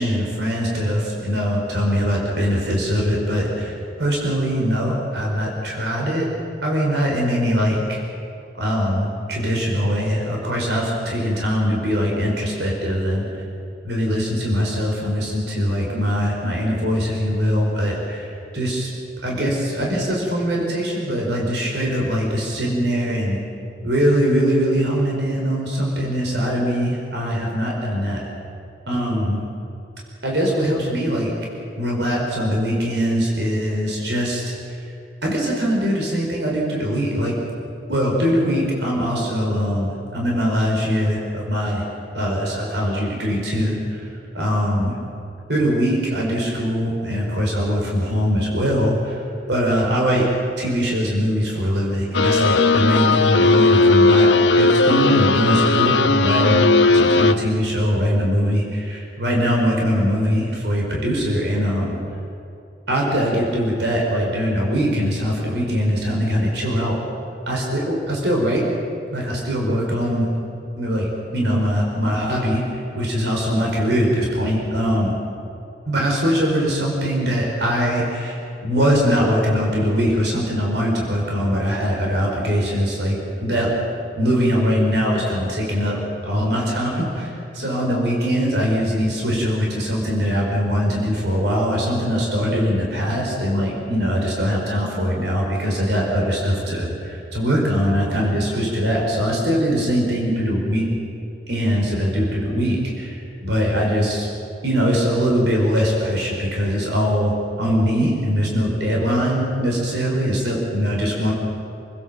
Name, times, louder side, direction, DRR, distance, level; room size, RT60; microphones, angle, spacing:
voice 1, 0.0-6.3 6.6-8.0 8.6-13.3 13.8-18.9 19.2-23.4 23.8-28.2 28.9-29.5 30.2-31.3 31.8-34.5 35.2-37.3 37.9-41.8 42.1-44.1 44.3-44.9 45.5-49.2 49.5-50.3 50.6-54.3 54.6-56.7 56.9-62.0 62.9-67.0 67.5-68.6 69.1-70.3 70.8-75.1 75.8-83.7 84.2-85.9 86.2-100.9 101.5-104.3 104.6-111.3, equal, 75° right, -2 dB, 5.0 m, -22 dB
sound 1, 52.1-57.3, left 3 dB, 90° left, 1.2 m, -16 dB
29.0 x 16.5 x 7.7 m, 2.8 s
head